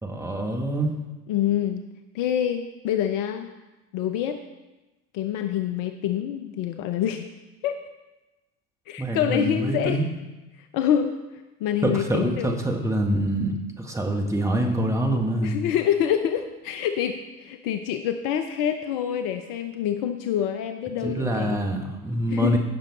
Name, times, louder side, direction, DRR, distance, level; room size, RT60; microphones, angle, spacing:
voice 1, 0.0-0.9 9.0-10.1 11.8-15.6 21.0-22.6, right 1 dB, 5° right, 1 dB, 1.7 m, -25 dB
voice 2, 1.3-1.8 2.1-3.5 3.9-4.4 5.1-7.3 7.6-7.8 8.9-10.1 10.7-11.1 11.6-12.5 15.4-21.6 22.3-22.6, left 9 dB, 45° left, 8 dB, 0.8 m, -26 dB
16.5 x 6.4 x 4.2 m, 1.1 s
figure-of-eight pair, 80°, 48 cm